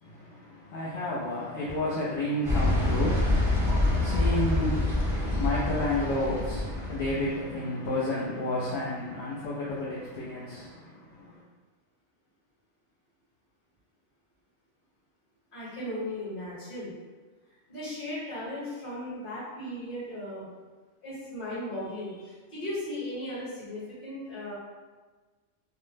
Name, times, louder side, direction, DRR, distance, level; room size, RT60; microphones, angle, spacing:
voice 1, 0.0-11.4, left 1 dB, 65° left, -7 dB, 0.8 m, -31 dB
sound 1, 2.4-7.3, left 2 dB, 5° right, 0.3 m, -26 dB
voice 2, 15.5-16.9 17.7-20.5 21.0-24.5, left 1 dB, 45° left, -9 dB, 1.4 m, -36 dB
2.8 x 2.0 x 3.2 m, 1.3 s
omnidirectional pair, 1.3 m